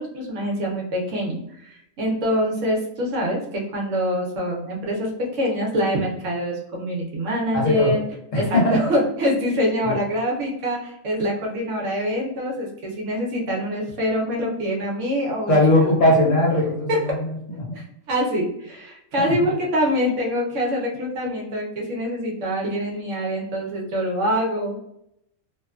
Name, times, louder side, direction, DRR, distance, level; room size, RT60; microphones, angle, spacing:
voice 1, 0.0-8.0 8.3-15.5 15.8-15.9 16.9-17.0 17.7-24.8, equal, 70° right, -2 dB, 1.1 m, -25 dB
voice 2, 7.5-8.0 8.3-8.8 9.8-9.9 15.5-17.8 19.2-19.3, left 1 dB, 70° left, -3 dB, 1.4 m, -20 dB
3.0 x 2.2 x 2.3 m, 0.77 s
omnidirectional pair, 1.4 m